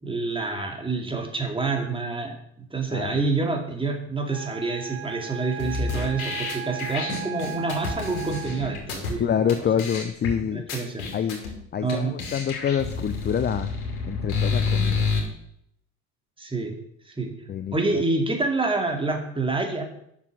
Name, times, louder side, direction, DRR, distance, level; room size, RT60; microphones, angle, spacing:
voice 1, 0.0-2.3 2.7-9.2 10.5-11.0 11.8-12.2 16.4-16.8 17.1-17.3 17.7-19.8, right 3 dB, 10° right, 4 dB, 2.4 m, -27 dB
voice 2, 2.9-3.2 9.2-10.6 11.1-11.4 11.7-13.7 14.1-15.1 17.5-18.0, left 8 dB, 25° left, 11 dB, 0.6 m, -26 dB
Wind instrument woodwind instrument, 4.3-8.9, right 12 dB, 35° right, 0.7 m, -37 dB
sound 1, 5.6-9.1 9.5-9.6 9.8-10.3 10.7-11.5 11.9-12.0 12.2-15.2, left 4 dB, 80° left, 2.8 m, -28 dB
8.2 x 6.8 x 6.5 m, 0.73 s
hypercardioid pair, 70°, 42 cm